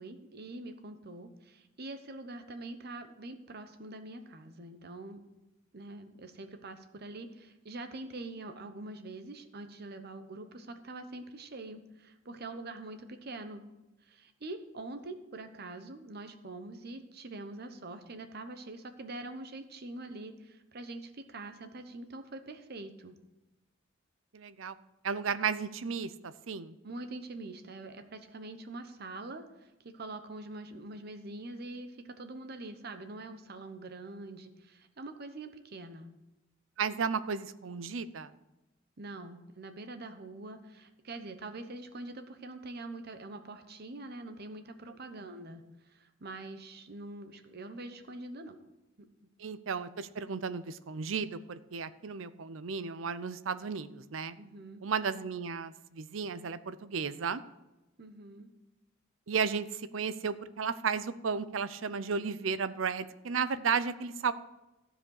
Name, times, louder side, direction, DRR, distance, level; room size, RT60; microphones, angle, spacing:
voice 1, 0.0-5.2 5.7-13.6 14.0-23.2 26.8-29.7 29.9-36.1 39.0-45.6 45.9-48.6 54.4-54.8 58.0-58.5, right 2 dB, 50° right, 8 dB, 0.9 m, -44 dB
voice 2, 24.3-24.7 25.0-26.7 36.8-38.3 49.4-54.4 54.8-57.4 59.3-64.3, right 5 dB, 75° right, 14 dB, 0.6 m, -34 dB
14.5 x 5.0 x 6.5 m, 0.99 s
head